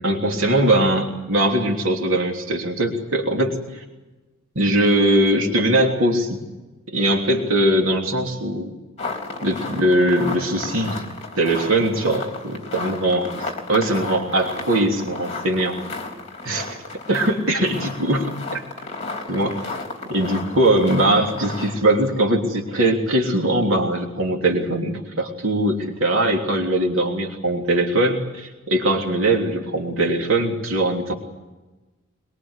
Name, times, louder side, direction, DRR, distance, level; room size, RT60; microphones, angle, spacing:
voice 1, 0.0-3.8 4.5-6.4 6.9-8.7 9.4-11.1 11.4-15.8 16.4-16.8 17.1-18.6 19.3-19.6 20.0-31.1, right 1 dB, 70° right, 1 dB, 3.2 m, -21 dB
sound 1, 9.0-21.9, left 3 dB, 30° left, 3.6 m, -33 dB
23.0 x 22.5 x 8.2 m, 1.1 s
head